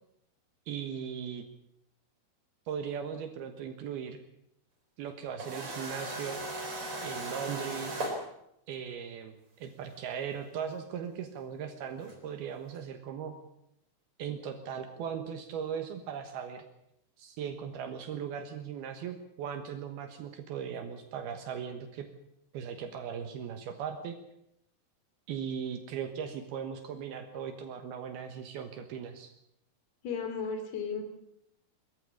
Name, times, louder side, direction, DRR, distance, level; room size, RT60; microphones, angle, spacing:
voice 1, 0.7-1.4 2.7-4.2 5.0-6.4 7.0-7.9 8.7-13.3 14.2-16.6 17.2-22.1 22.5-24.2 25.3-29.3, right 7 dB, 75° right, 6 dB, 3.2 m, -38 dB
sound 1, 5.4-8.2 10.0-10.1 12.1-12.2, right 2 dB, 35° right, 4.6 m, -37 dB
voice 2, 30.0-31.0, left 5 dB, 70° left, 7 dB, 4.8 m, -34 dB
21.0 x 14.0 x 8.6 m, 0.79 s
omnidirectional pair, 4.6 m